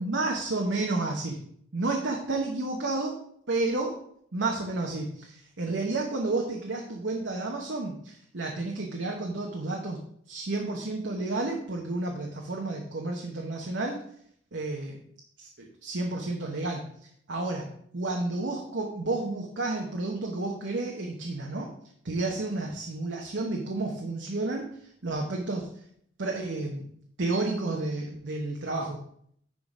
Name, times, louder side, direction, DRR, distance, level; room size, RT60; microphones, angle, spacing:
voice 1, 0.0-1.4 1.7-3.2 3.5-4.0 4.3-10.0 10.3-14.0 14.5-15.0 15.4-16.8 17.3-21.7 22.0-24.7 25.0-25.7 26.2-26.9 27.2-29.0, right 2 dB, 70° right, 0 dB, 1.0 m, -31 dB
10.5 x 3.8 x 4.9 m, 0.66 s
head